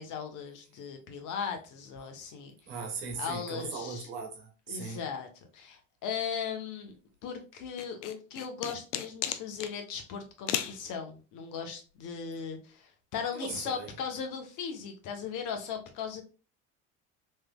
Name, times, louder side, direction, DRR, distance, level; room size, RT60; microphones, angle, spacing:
voice 1, 0.0-2.5 3.2-4.1 4.7-6.9 7.2-16.2, left 7 dB, 55° left, 1.0 m, -38 dB
voice 2, 2.7-5.0 13.3-13.9, right 5 dB, 75° right, 1.3 m, -38 dB
sound 1, 7.8-9.7 10.5-10.8, left 11 dB, 80° left, 0.5 m, -34 dB
3.3 x 3.3 x 2.2 m
hypercardioid pair, 75°, 36 cm